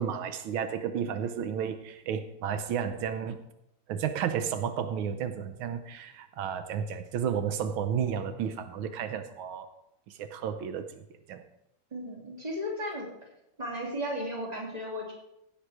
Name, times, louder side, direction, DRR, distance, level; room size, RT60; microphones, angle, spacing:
voice 1, 0.0-3.4 3.9-9.7 10.1-11.0 11.3-11.4, right 8 dB, 90° right, 10 dB, 1.6 m, -32 dB
voice 2, 11.9-13.1 13.6-15.1, equal, 20° right, -2 dB, 2.8 m, -35 dB
16.0 x 6.4 x 4.8 m, 0.83 s
omnidirectional pair, 2.2 m